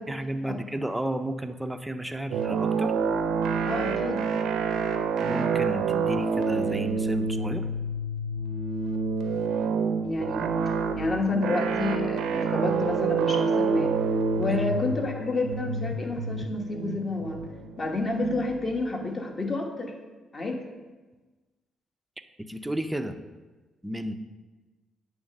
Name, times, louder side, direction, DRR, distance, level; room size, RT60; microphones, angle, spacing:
voice 1, 0.1-2.9 5.2-7.6 14.4-14.6 22.5-23.2 23.8-24.1, right 1 dB, 5° right, 8 dB, 0.5 m, -32 dB
sound 1, 2.3-18.8, right 5 dB, 80° right, 0.6 m, -28 dB
voice 2, 3.7-4.3 10.0-13.9 14.4-17.4 17.8-19.9 20.3-20.6, left 2 dB, 35° left, 2 dB, 1.2 m, -30 dB
8.6 x 3.2 x 6.4 m, 1.3 s
cardioid pair, 90°, 0 cm